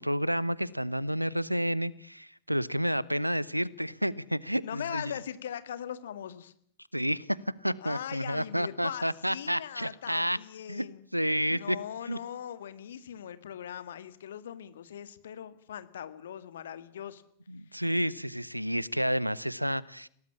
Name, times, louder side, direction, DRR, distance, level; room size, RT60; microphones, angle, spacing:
voice 1, 0.0-5.1 6.9-10.4 10.7-10.9 11.1-11.8 12.1-12.2 17.5-20.1, equal, 90° right, 22 dB, 0.9 m, -30 dB
voice 2, 4.6-6.5 7.8-11.0 11.5-17.2, left 9 dB, 65° left, 13 dB, 1.8 m, -40 dB
22.0 x 18.5 x 8.6 m, 0.64 s
figure-of-eight pair, 90°, 0 cm